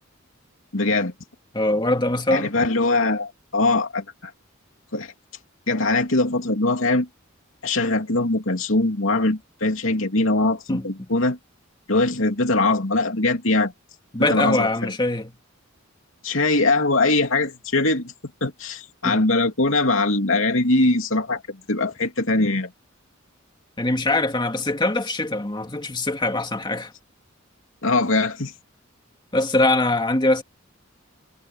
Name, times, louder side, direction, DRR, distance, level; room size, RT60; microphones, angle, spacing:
voice 1, 0.7-1.1 2.3-4.3 4.9-5.1 5.7-7.1 7.6-11.4 11.9-13.7 14.3-14.9 16.2-18.1 18.4-22.7 27.8-28.5, left 2 dB, 75° left, 3.0 m, -22 dB
voice 2, 1.5-2.5 10.7-10.9 14.1-15.3 19.0-19.2 23.8-26.9 29.3-30.4, left 2 dB, 25° left, 2.1 m, -22 dB
head